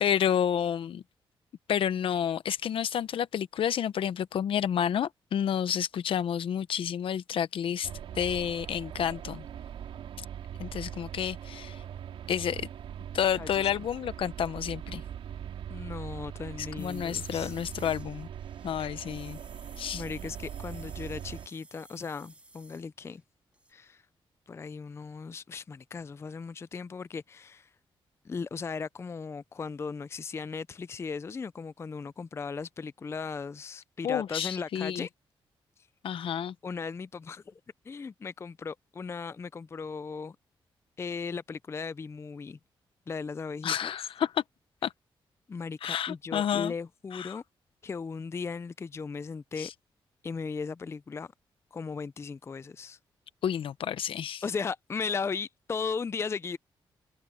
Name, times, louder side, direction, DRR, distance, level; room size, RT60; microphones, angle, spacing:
voice 1, 0.0-1.0 1.7-9.4 10.6-11.8 12.3-12.7 13.1-15.0 16.8-18.3 18.6-19.4 19.8-20.0 34.0-35.1 36.0-36.5 43.6-44.4 44.8-44.9 45.8-46.7 47.1-47.4 49.6-49.7 53.4-54.4, left 9 dB, 75° left, 0.8 m, -30 dB
sound 1, 7.8-21.5, right 9 dB, 90° right, 3.0 m, -41 dB
voice 2, 13.4-13.8 15.7-17.6 18.8-19.1 19.9-23.2 23.7-24.0 24.5-27.7 28.2-35.1 35.8-35.9 36.6-40.4 41.0-42.6 43.1-44.0 45.5-47.4 47.8-49.7 50.2-51.3 51.7-53.0 54.4-56.6, left 5 dB, 30° left, 0.4 m, -37 dB
sound 2, 16.8-23.2 23.5-23.7, right 2 dB, 15° right, 2.5 m, -54 dB
cardioid pair, 110°, 9 cm